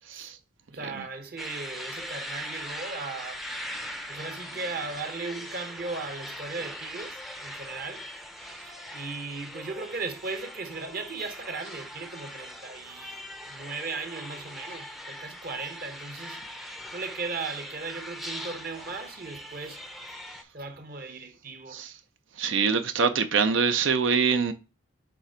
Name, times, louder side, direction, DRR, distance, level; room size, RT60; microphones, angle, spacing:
voice 1, 0.7-3.4 4.1-8.1 8.6-16.4 16.9-19.8 20.5-21.8, right 4 dB, 45° right, 1.0 m, -37 dB
sound 1, 1.4-20.4, equal, ahead, 0.5 m, -41 dB
voice 2, 22.4-24.5, right 5 dB, 70° right, 0.6 m, -24 dB
6.9 x 3.3 x 5.0 m
head